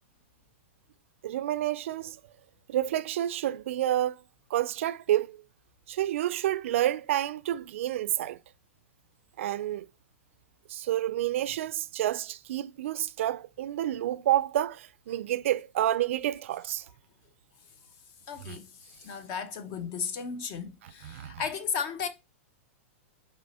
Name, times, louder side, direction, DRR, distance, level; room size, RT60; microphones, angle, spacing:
voice 1, 1.2-2.2 2.7-4.2 4.5-5.4 5.9-8.4 9.4-9.9 10.7-16.9 18.5-18.6 20.8-21.4, right 13 dB, 65° right, 0.4 m, -29 dB
voice 2, 18.3-22.1, left 6 dB, 40° left, 0.8 m, -35 dB
6.1 x 4.1 x 4.2 m
supercardioid pair, 150°, 7 cm